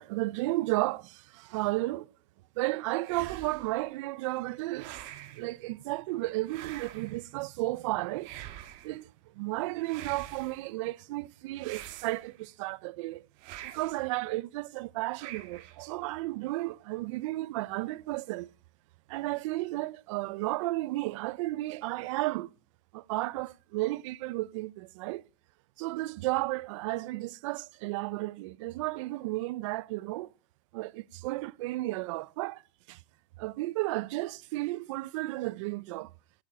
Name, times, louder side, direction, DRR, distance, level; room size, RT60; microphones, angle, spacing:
voice 1, 0.0-2.1 2.6-8.3 8.8-9.1 9.4-13.2 13.6-18.5 19.1-22.5 22.9-25.2 25.8-30.3 30.7-32.6 32.9-33.0 33.4-36.1, right 19 dB, 70° right, 0.7 m, -33 dB
sound 1, 3.0-3.8 4.7-5.5 6.5-7.3 8.2-9.0 9.8-10.7 11.6-12.5 13.4-14.1 15.2-15.9, right 13 dB, 50° right, 2.0 m, -45 dB
17.0 x 8.9 x 5.6 m
supercardioid pair, 160°, 17 cm